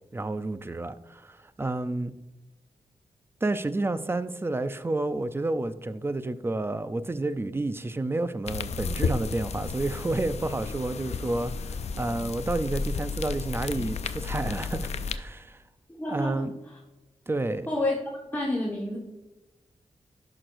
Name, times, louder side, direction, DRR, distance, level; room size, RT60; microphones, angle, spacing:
voice 1, 0.1-2.1 3.4-15.6 16.1-16.5 17.3-17.7, right 2 dB, 20° right, 0.5 m, -30 dB
sound 1, 8.5-15.2, left 4 dB, 65° left, 0.4 m, -33 dB
voice 2, 15.9-16.8 17.7-18.0 18.3-19.0, left 1 dB, 15° left, 1.5 m, -29 dB
11.0 x 5.9 x 2.6 m
cardioid pair, 80°, 12 cm